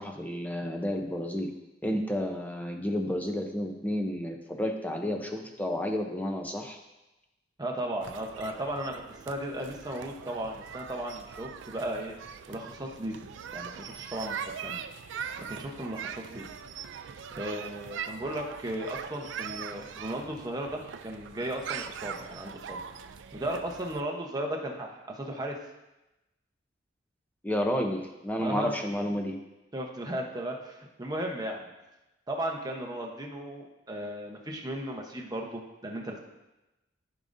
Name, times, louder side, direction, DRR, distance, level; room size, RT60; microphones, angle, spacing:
voice 1, 0.0-1.5 1.8-6.8 27.4-29.4, left 1 dB, 10° left, 3 dB, 0.7 m, -31 dB
voice 2, 7.6-12.1 12.5-13.2 13.5-14.9 15.5-16.5 17.4-22.8 23.3-25.6 28.4-28.8 29.7-31.7 32.3-36.2, right 1 dB, 20° right, 0 dB, 0.9 m, -35 dB
sound 1, 8.0-24.0, right 7 dB, 65° right, 0.4 m, -41 dB
13.5 x 5.2 x 2.7 m, 1.0 s
head